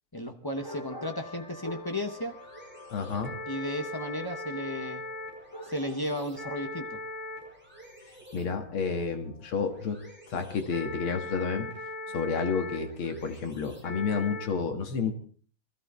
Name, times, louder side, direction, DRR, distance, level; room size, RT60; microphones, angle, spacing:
voice 1, 0.1-2.4 3.5-5.0 5.5-7.0, left 1 dB, 35° left, 5 dB, 0.3 m, -34 dB
sound 1, 0.6-11.9, left 2 dB, 55° left, 6.5 m, -52 dB
sound 2, 1.3-14.5, left 2 dB, 5° right, 6.1 m, -41 dB
voice 2, 2.9-3.3 8.3-10.0 10.3-11.7 12.1-15.1, left 5 dB, 75° left, 6 dB, 2.6 m, -30 dB
21.0 x 13.5 x 4.3 m, 0.44 s
omnidirectional pair, 2.3 m